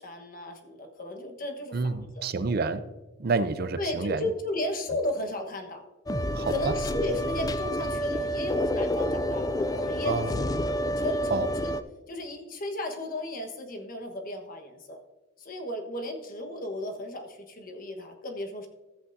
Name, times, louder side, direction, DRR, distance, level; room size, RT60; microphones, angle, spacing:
voice 1, 0.0-2.2 3.8-5.8 6.5-10.3 11.0-11.8 12.1-15.0 15.4-18.7, left 1 dB, 45° left, 3 dB, 1.3 m, -34 dB
voice 2, 1.7-2.9 3.2-4.3 6.3-6.8 10.1-10.4 11.3-11.5, right 4 dB, 55° right, 12 dB, 0.5 m, -28 dB
sound 1, 6.1-11.8, equal, 20° left, 0.4 m, -29 dB
14.5 x 8.1 x 2.7 m, 1.1 s
head